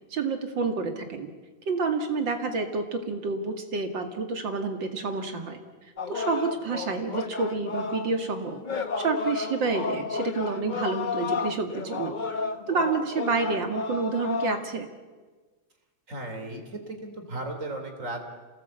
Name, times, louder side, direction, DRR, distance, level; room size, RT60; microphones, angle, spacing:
voice 1, 0.1-1.3 1.7-5.6 6.1-8.6 9.0-12.2 12.7-14.9, right 4 dB, 65° right, 6 dB, 2.8 m, -29 dB
sound 1, 6.0-14.7, left 5 dB, 40° left, 0.6 m, -32 dB
voice 2, 16.1-18.2, right 2 dB, 35° right, 5 dB, 3.6 m, -35 dB
27.5 x 18.0 x 8.2 m, 1.3 s
omnidirectional pair, 2.2 m